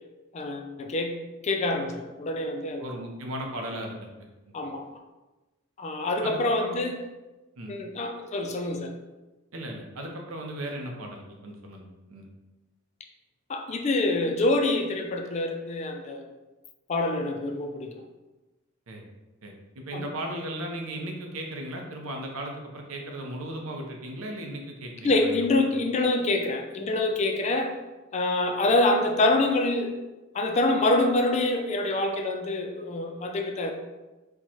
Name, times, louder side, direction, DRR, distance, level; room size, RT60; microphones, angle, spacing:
voice 1, 0.3-1.2 1.4-2.9 4.5-4.9 5.8-7.0 7.7-8.9 13.5-16.3 16.9-17.9 19.9-20.1 25.0-27.7 28.1-30.0 30.3-33.7, left 2 dB, 30° left, 4 dB, 0.3 m, -26 dB
voice 2, 2.8-4.1 4.5-4.6 6.2-6.8 7.6-7.7 9.5-12.3 18.9-19.0 19.4-25.7, right 1 dB, 80° right, 1 dB, 0.6 m, -37 dB
4.5 x 2.2 x 2.8 m, 1.1 s
head